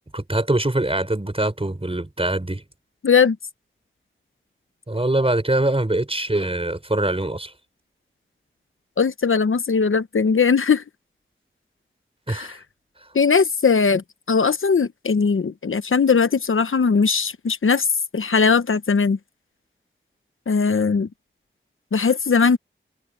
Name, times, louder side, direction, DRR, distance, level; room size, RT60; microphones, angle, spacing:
voice 1, 0.1-2.6 4.9-7.5 12.3-12.6, right 1 dB, 30° right, 5.0 m, -23 dB
voice 2, 3.0-3.4 9.0-10.8 12.3-12.5 13.1-17.9 18.1-19.2 20.5-21.1 21.9-22.6, left 5 dB, 80° left, 0.9 m, -19 dB
wide cardioid pair, 55°, 20 cm